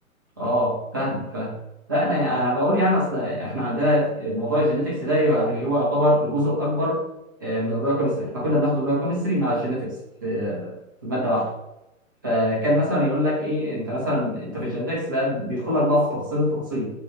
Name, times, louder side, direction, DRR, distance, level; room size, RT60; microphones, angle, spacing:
voice 1, 0.4-1.5 1.9-7.0 7.4-9.9 10.2-10.7 11.0-11.5 12.2-16.9, equal, 15° right, -6 dB, 0.4 m, -23 dB
2.8 x 2.1 x 3.4 m, 0.90 s
figure-of-eight pair, 125°, 42 cm